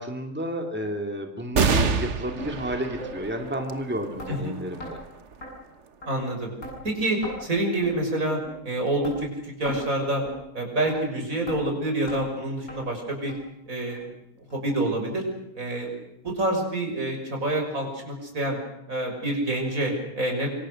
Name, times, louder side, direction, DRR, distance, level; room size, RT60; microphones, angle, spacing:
voice 1, 0.0-5.0, right 1 dB, 5° right, 3 dB, 2.6 m, -31 dB
sound 1, 1.5-8.4 9.0-9.1 10.3-10.8, right 5 dB, 55° right, 1.5 m, -30 dB
sound 2, 2.4-2.5 3.0-3.1 3.6-3.7 4.2-4.3 4.8-4.9 5.4-5.5 6.0-6.1 6.6-6.8 7.2-7.4 7.8-8.0 8.4-8.6 9.0-9.2 9.7-9.8 10.3-10.4 10.9-11.0 11.5-11.6 12.1-12.2 12.7-12.8 13.3-13.4 13.9-14.0 14.5-14.6 15.1-15.2, equal, 85° left, 8.2 m, -37 dB
voice 2, 6.0-6.5 6.8-10.2 10.5-13.3 13.7-14.0 14.5-15.3 15.5-15.9 16.2-18.6 18.9-20.5, right 1 dB, 70° right, 2 dB, 6.7 m, -27 dB
26.0 x 25.0 x 6.5 m, 0.82 s
omnidirectional pair, 1.5 m